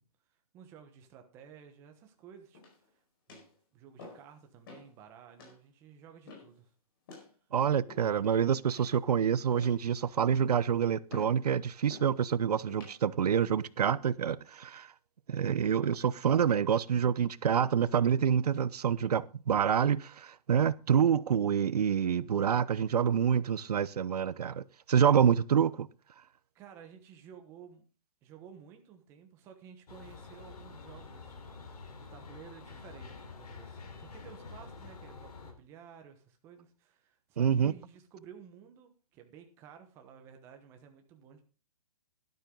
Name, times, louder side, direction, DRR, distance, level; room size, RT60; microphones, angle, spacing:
voice 1, 0.5-2.6 2.9-3.0 3.3-3.4 3.7-6.7 26.5-27.9 28.2-31.4 32.1-41.4, right 8 dB, 15° right, 1.1 m, -53 dB
sound 1, 2.5-2.9 3.3-3.5 4.0-4.3 4.7-4.9 5.4-5.6 6.3-6.6 7.1-7.3 7.9-8.3 8.8-9.1 9.5-9.9 10.3-10.6 11.1-11.4 11.9-12.1 12.7-13.0 13.6-13.9, left 3 dB, 35° left, 4.8 m, -50 dB
voice 2, 7.5-14.9 15.3-25.9 37.4-37.7, right 8 dB, 90° right, 0.7 m, -27 dB
sound 2, 29.9-35.5, left 4 dB, 80° left, 3.8 m, -48 dB
12.0 x 11.5 x 3.8 m
hypercardioid pair, 175°, 19 cm